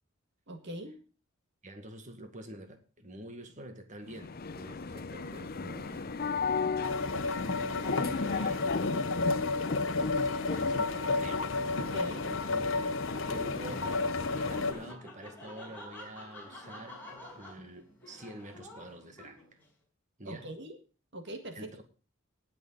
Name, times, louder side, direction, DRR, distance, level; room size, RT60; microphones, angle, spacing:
voice 1, 0.5-1.0 11.8-12.2 20.3-20.8 21.1-21.7, right 1 dB, 60° right, 1.9 m, -41 dB
voice 2, 1.6-6.1 7.1-8.7 10.0-10.2 10.5-11.6 12.0-12.6 13.3-17.0 17.3-19.6 20.2-20.5 21.5-21.8, right 1 dB, 35° right, 1.9 m, -47 dB
sound 1, 4.1-14.9, left 4 dB, 45° left, 0.7 m, -36 dB
sound 2, 6.8-14.7, left 3 dB, 65° left, 1.1 m, -32 dB
Laughter, 13.1-19.6, left 1 dB, 10° left, 5.4 m, -48 dB
19.0 x 6.9 x 3.9 m
head